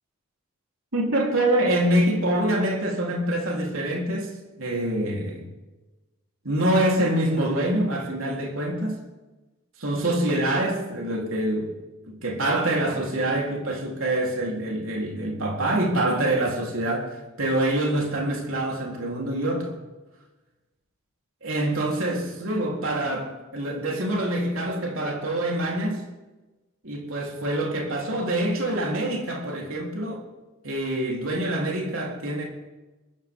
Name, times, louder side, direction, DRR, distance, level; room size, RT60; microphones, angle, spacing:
voice 1, 0.9-4.3 4.6-5.4 6.4-9.0 9.8-11.7 12.2-17.1 17.4-19.8 21.4-26.0 26.8-30.2 30.6-32.4, right 1 dB, 65° right, 3.8 m, -25 dB
23.5 x 14.5 x 3.8 m
head